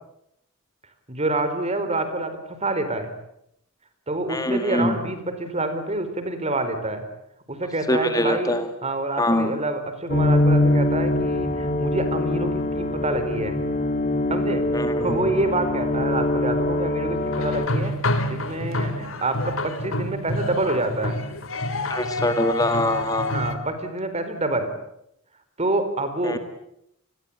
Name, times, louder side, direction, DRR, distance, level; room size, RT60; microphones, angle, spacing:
voice 1, 1.1-3.1 4.1-7.0 7.5-8.5 8.8-13.6 14.3-18.0 18.3-21.2 23.3-24.7 25.6-26.4, right 2 dB, 30° right, 10 dB, 4.5 m, -27 dB
voice 2, 4.3-5.0 7.9-8.7 9.2-9.6 14.7-15.3 21.9-23.4 26.2-26.4, left 1 dB, 20° left, 8 dB, 1.7 m, -24 dB
sound 1, 10.1-17.7, left 1 dB, 40° left, 3.2 m, -23 dB
sound 2, 17.3-23.5, left 1 dB, 70° left, 2.8 m, -28 dB
29.5 x 21.0 x 8.7 m, 0.76 s
head